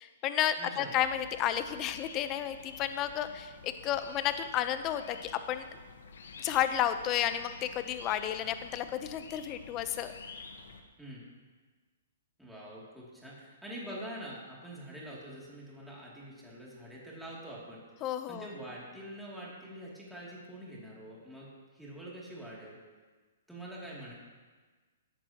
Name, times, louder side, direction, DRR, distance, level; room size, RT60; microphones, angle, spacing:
voice 1, 0.0-5.7 6.4-10.1 18.0-18.5, left 11 dB, 25° left, 10 dB, 0.7 m, -32 dB
voice 2, 0.6-0.9 11.0-11.2 12.4-17.8 18.3-22.8 23.5-24.1, right 1 dB, ahead, -7 dB, 2.7 m, -45 dB
sound 1, 0.9-10.8, left 4 dB, 80° left, 1.3 m, -50 dB
16.5 x 11.0 x 3.0 m, 1.4 s
hypercardioid pair, 150°, 0 cm